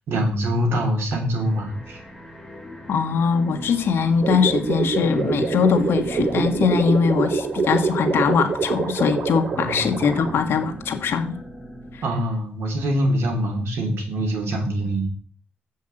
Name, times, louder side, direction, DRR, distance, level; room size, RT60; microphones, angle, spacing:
voice 1, 0.1-2.0 9.5-9.9 12.0-15.1, equal, 90° right, 2.9 m, -24 dB
sound 1, 1.3-12.1, equal, 5° right, 2.3 m, -39 dB
voice 2, 2.9-11.4 11.9-12.0, left 6 dB, 75° left, 1.3 m, -21 dB
sound 2, 4.2-10.4, right 4 dB, 55° right, 1.3 m, -25 dB
7.7 x 5.4 x 7.5 m
wide cardioid pair, 135°, 4 cm